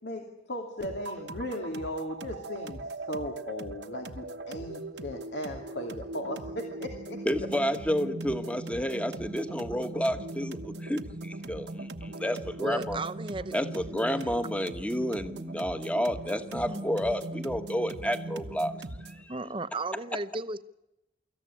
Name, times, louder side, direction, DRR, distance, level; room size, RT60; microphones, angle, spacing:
voice 1, 0.0-7.2, left 1 dB, 85° left, 2 dB, 2.6 m, -37 dB
sound 1, 0.8-19.3, right 2 dB, 85° right, 1.3 m, -40 dB
voice 2, 7.2-13.0 13.5-18.8 19.0-19.3, equal, 5° left, 9 dB, 1.3 m, -30 dB
voice 3, 12.6-13.5 16.3-16.8 19.3-20.6, right 2 dB, 30° right, 13 dB, 0.8 m, -35 dB
25.0 x 15.0 x 10.0 m, 0.92 s
head